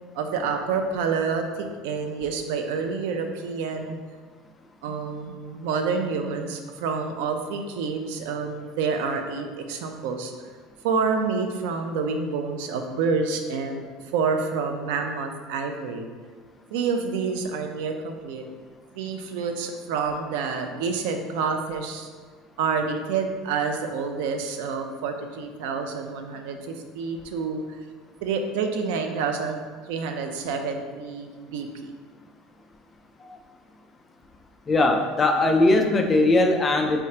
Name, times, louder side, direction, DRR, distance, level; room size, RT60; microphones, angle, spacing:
voice 1, 0.1-4.0 4.8-10.3 10.8-13.8 14.1-16.1 16.7-18.4 18.9-22.1 22.6-27.8 28.2-29.6 29.9-31.9, right 5 dB, 85° right, 5 dB, 0.5 m, -28 dB
voice 2, 34.7-37.0, left 2 dB, 20° left, 4 dB, 0.3 m, -20 dB
4.7 x 3.3 x 2.8 m, 1.5 s
cardioid pair, 165°, 0 cm